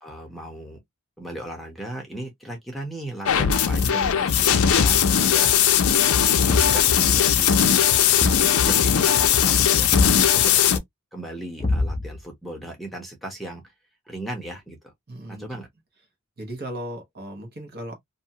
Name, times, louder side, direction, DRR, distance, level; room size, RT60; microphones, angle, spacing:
voice 1, 0.0-0.8 1.2-5.5 6.3-10.7 11.1-13.6 14.1-14.9 15.3-15.7, right 1 dB, ahead, 0.8 m, -37 dB
sound 1, 3.3-10.8, left 8 dB, 80° left, 0.5 m, -19 dB
Thump thud, 4.8-5.2 6.5-6.8 8.2-8.5 9.9-10.3 11.6-12.2, left 2 dB, 25° left, 0.6 m, -24 dB
voice 2, 15.1-15.5 16.4-17.9, right 1 dB, 50° right, 1.1 m, -36 dB
2.7 x 2.3 x 2.7 m
head